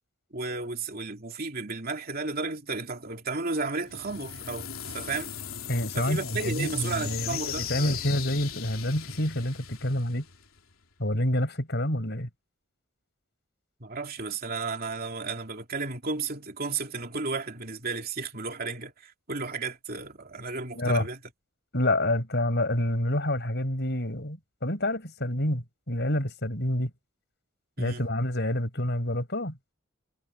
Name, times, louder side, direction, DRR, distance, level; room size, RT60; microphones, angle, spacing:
voice 1, 0.3-4.7 4.9-5.3 5.9-8.0 13.8-21.2 27.8-28.0, right 4 dB, 45° right, 2.9 m, -33 dB
sound 1, 3.8-10.7, left 8 dB, 80° left, 3.0 m, -38 dB
voice 2, 5.7-10.2 11.0-12.3 20.7-21.1 21.7-26.9 27.8-29.6, left 1 dB, 55° left, 6.8 m, -28 dB
head